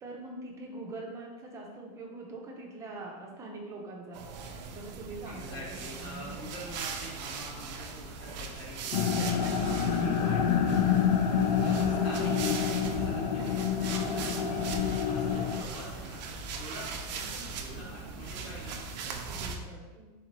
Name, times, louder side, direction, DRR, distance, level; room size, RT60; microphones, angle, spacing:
voice 1, 0.0-4.2 4.7-5.8 6.0-6.4 9.2-10.0 19.1-20.1, right 2 dB, 15° right, -1 dB, 0.5 m, -43 dB
sound 1, 4.1-19.6, right 4 dB, 90° right, 0.6 m, -40 dB
voice 2, 5.2-14.6 15.0-19.2, equal, 45° left, -5 dB, 1.5 m, -45 dB
sound 2, 8.9-15.6, left 7 dB, 70° left, 0.5 m, -27 dB
4.2 x 3.6 x 3.0 m, 1.2 s
supercardioid pair, 170°, 21 cm